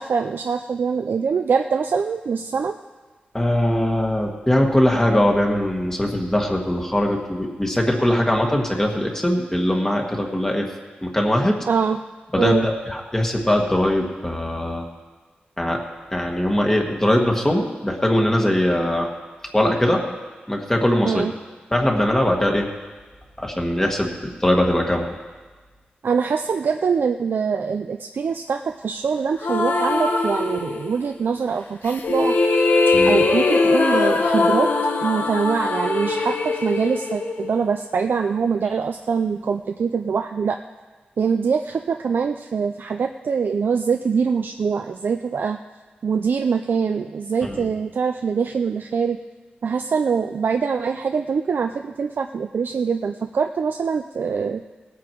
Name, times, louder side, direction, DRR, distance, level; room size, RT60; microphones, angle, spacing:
voice 1, 0.0-2.8 11.7-12.0 12.4-12.7 21.0-21.3 26.0-32.4 32.9-34.7 35.0-40.6 41.2-45.6 46.0-49.2 49.6-54.6, right 6 dB, 75° right, 5 dB, 0.4 m, -23 dB
voice 2, 3.3-10.7 11.0-11.6 12.3-14.9 15.6-15.8 16.1-19.1 19.5-20.2 20.5-21.3 21.7-22.7 23.4-25.1 32.9-33.3 47.4-47.7, left 1 dB, 15° left, 1 dB, 1.5 m, -21 dB
sound 1, 29.4-31.1 31.8-37.9, left 3 dB, 70° left, 1.1 m, -21 dB
18.5 x 8.6 x 4.6 m, 1.3 s
wide cardioid pair, 95°, 3 cm